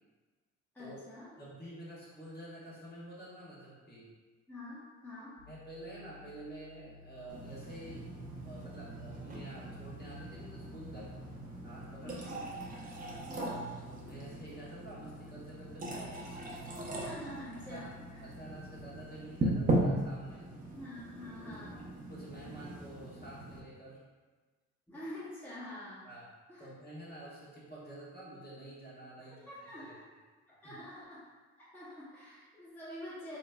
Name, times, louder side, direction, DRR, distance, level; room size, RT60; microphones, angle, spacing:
voice 1, 0.7-1.4 4.5-5.4 12.0-12.3 13.3-13.6 16.8-17.9 20.7-21.8 24.9-26.1 26.5-26.7 29.3-30.0 30.5-31.3 31.6-33.4, left 1 dB, 5° left, -10 dB, 0.7 m, -46 dB
voice 2, 1.4-4.1 5.5-8.2 8.4-11.1 11.6-12.3 13.4-16.2 17.6-17.9 18.2-20.5 21.4-24.0 26.0-26.3 26.6-29.9 30.6-30.7, right 1 dB, 35° left, -8 dB, 1.3 m, -49 dB
sound 1, 5.4-20.3, left 4 dB, 90° right, 0.6 m, -55 dB
sound 2, 7.3-23.6, right 1 dB, 30° right, 0.6 m, -39 dB
3.4 x 3.0 x 2.2 m, 1.4 s
cardioid pair, 90°, 30 cm